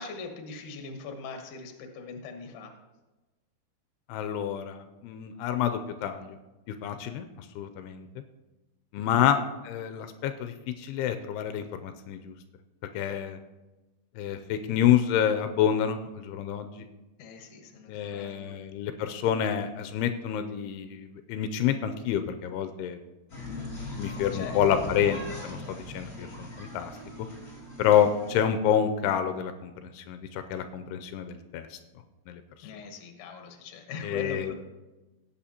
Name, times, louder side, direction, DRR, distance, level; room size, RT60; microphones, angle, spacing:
voice 1, 0.0-2.7 9.1-9.3 17.2-18.6 24.3-24.6 32.6-34.5, left 4 dB, 65° left, 5 dB, 2.3 m, -40 dB
voice 2, 4.1-6.4 6.7-7.3 7.6-8.1 8.9-9.4 9.6-12.3 12.9-13.4 14.2-16.9 17.9-23.0 23.9-26.9 27.8-31.8 32.3-32.4 34.0-34.5, left 9 dB, 85° left, 8 dB, 2.6 m, -28 dB
sound 1, 23.3-28.4, left 2 dB, 20° left, 3.3 m, -40 dB
17.0 x 8.1 x 2.9 m, 1.1 s
omnidirectional pair, 4.6 m